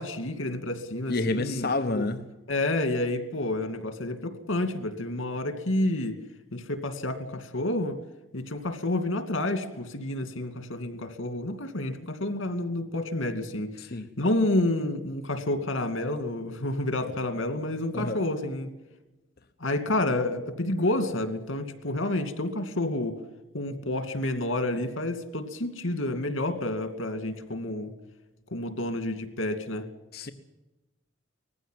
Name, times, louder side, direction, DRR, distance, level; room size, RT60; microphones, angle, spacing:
voice 1, 0.0-2.1 2.5-6.2 6.5-8.0 8.3-13.9 14.2-18.7 19.6-23.2 23.5-27.9 28.5-29.9, left 1 dB, 90° left, 2.6 m, -29 dB
voice 2, 1.1-2.2 13.8-14.1 17.9-18.2 30.1-30.3, left 2 dB, 50° left, 1.0 m, -29 dB
20.0 x 15.5 x 9.3 m
head